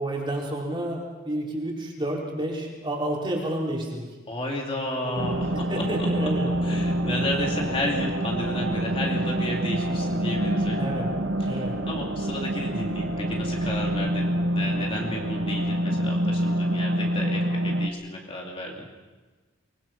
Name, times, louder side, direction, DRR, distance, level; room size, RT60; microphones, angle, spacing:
voice 1, 0.0-4.1 5.0-6.5 10.8-11.1 11.5-11.8, right 1 dB, 25° right, -2 dB, 4.3 m, -30 dB
voice 2, 4.3-6.3 6.6-11.0 11.4-18.9, left 1 dB, 25° left, 0 dB, 2.5 m, -32 dB
sound 1, 5.2-17.9, right 1 dB, 55° right, 1.2 m, -26 dB
23.5 x 21.5 x 5.9 m, 1.3 s
head